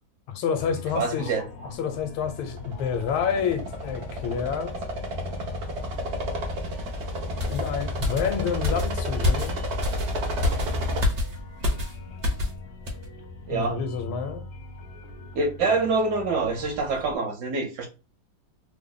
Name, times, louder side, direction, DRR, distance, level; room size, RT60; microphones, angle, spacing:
voice 1, 0.3-1.3 1.6-4.7 7.5-9.6 13.5-14.4, left 7 dB, 90° left, 1.5 m, -28 dB
sound 1, 0.6-17.2, left 3 dB, 65° left, 0.8 m, -42 dB
voice 2, 0.9-1.4 13.5-13.8 15.3-17.9, right 3 dB, 65° right, 1.2 m, -25 dB
sound 2, 2.3-11.0, equal, 85° right, 0.6 m, -31 dB
sound 3, 7.4-12.6 12.9-13.1, left 2 dB, 40° right, 0.9 m, -28 dB
3.4 x 2.0 x 3.7 m
omnidirectional pair, 2.2 m